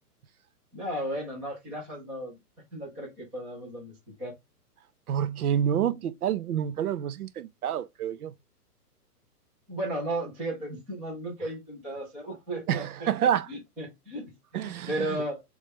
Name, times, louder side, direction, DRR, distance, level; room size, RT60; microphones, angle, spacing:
voice 1, 0.7-2.4 2.7-4.4 9.7-13.1 13.5-15.4, right 1 dB, 5° right, 0.4 m, -35 dB
voice 2, 5.1-8.3 12.7-13.5 14.5-15.2, right 9 dB, 65° right, 0.7 m, -28 dB
4.0 x 3.2 x 3.5 m
hypercardioid pair, 140°, 47 cm